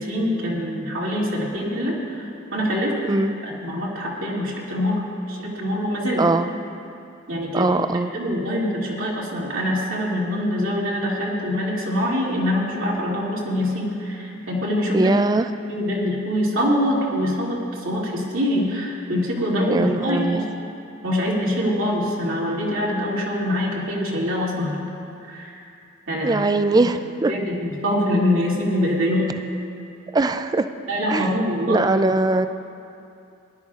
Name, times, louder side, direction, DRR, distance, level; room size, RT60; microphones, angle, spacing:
voice 1, 0.0-2.3 2.5-2.9 3.4-6.3 7.3-7.8 8.1-15.1 15.7-20.5 21.0-24.8 25.2-25.6 26.1-26.5 26.8-26.9 27.3-29.3 30.9-31.8, equal, 80° right, -4 dB, 2.5 m, -24 dB
voice 2, 7.5-8.1 14.9-15.5 19.7-20.4 26.2-27.3 30.1-30.7 31.1-31.3 31.7-32.5, right 2 dB, 20° right, 10 dB, 0.3 m, -20 dB
19.5 x 12.0 x 2.5 m, 2.6 s
head